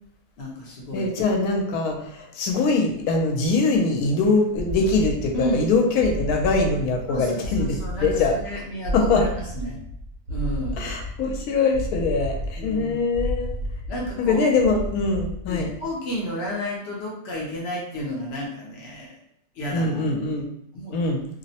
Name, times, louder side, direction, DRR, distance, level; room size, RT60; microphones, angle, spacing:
voice 1, 0.4-1.1 5.3-5.7 7.1-9.8 10.3-10.9 12.6-13.1 13.9-14.5 15.5-19.2 19.5-20.1 20.7-21.0, equal, 60° left, -3 dB, 0.7 m, -32 dB
voice 2, 0.9-7.7 8.0-8.3 8.9-9.2 10.8-13.5 14.2-15.7 19.7-20.5 20.9-21.2, left 3 dB, 80° left, 2 dB, 1.0 m, -22 dB
sound 1, 4.6-15.9, equal, 80° right, 1.2 m, -32 dB
2.7 x 2.0 x 2.7 m, 0.73 s
omnidirectional pair, 1.6 m